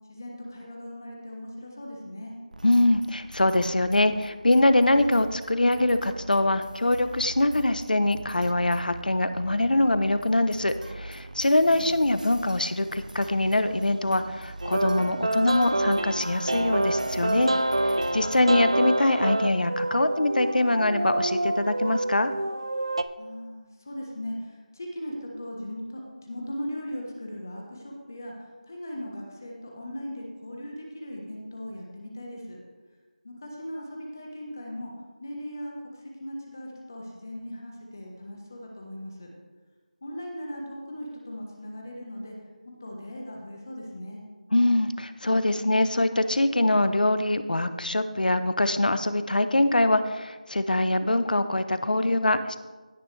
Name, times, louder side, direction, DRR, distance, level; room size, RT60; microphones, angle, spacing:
voice 1, 0.1-2.4 11.6-12.3 23.2-32.6 33.2-34.9 35.2-39.3 40.0-42.4 42.6-44.2, equal, 20° left, 0 dB, 1.1 m, -38 dB
sound 1, 2.5-18.9, right 1 dB, 70° right, 0.8 m, -43 dB
voice 2, 2.6-17.5 17.9-22.3 44.5-52.6, left 1 dB, 85° left, 11 dB, 0.9 m, -23 dB
sound 2, 14.6-23.0, right 1 dB, 40° right, 0.4 m, -27 dB
16.5 x 6.5 x 3.3 m, 1.3 s
figure-of-eight pair, 180°, 4 cm